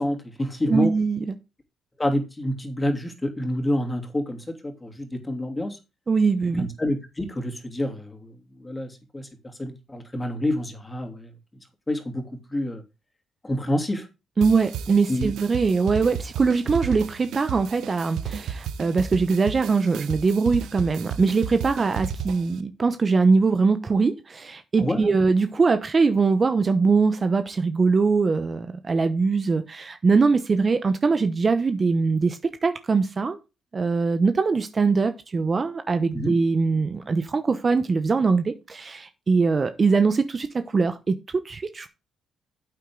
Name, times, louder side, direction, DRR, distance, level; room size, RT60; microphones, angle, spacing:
voice 1, 0.0-0.9 2.0-5.8 6.6-9.3 9.6-11.3 11.9-12.8 13.4-14.1 15.1-15.3 24.8-25.1 36.1-36.4, left 1 dB, 15° left, 2.9 m, -28 dB
voice 2, 0.7-1.4 6.1-6.7 14.4-33.4 33.7-41.9, right 4 dB, 35° right, 0.9 m, -22 dB
sound 1, 14.4-22.6, right 8 dB, 80° right, 0.9 m, -33 dB
9.3 x 8.3 x 3.8 m
cardioid pair, 90°, 0 cm